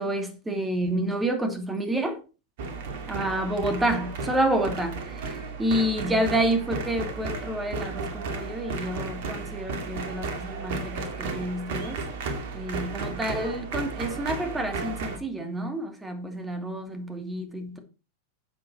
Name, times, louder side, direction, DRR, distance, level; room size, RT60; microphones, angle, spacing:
voice 1, 0.0-2.2 3.1-5.0 5.6-12.0 12.5-17.8, right 1 dB, 10° right, 2.5 m, -29 dB
sound 1, 2.6-15.2, right 3 dB, 50° right, 2.2 m, -34 dB
10.5 x 7.8 x 4.2 m
figure-of-eight pair, 90°, 0 cm